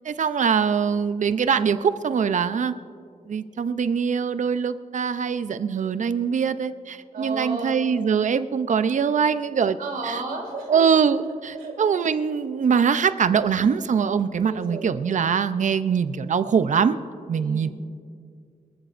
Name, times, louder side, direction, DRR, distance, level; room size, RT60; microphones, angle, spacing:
voice 1, 0.0-2.7 3.3-9.8 10.0-10.2 10.7-11.2 11.8-17.0 17.3-17.7, right 6 dB, 60° right, 12 dB, 0.5 m, -22 dB
voice 2, 7.1-7.8 9.8-10.8 11.3-11.8 14.3-15.1 17.4-17.7, right 3 dB, 85° right, 0 dB, 3.2 m, -33 dB
25.0 x 14.5 x 2.5 m, 2.3 s
wide cardioid pair, 125°, 14 cm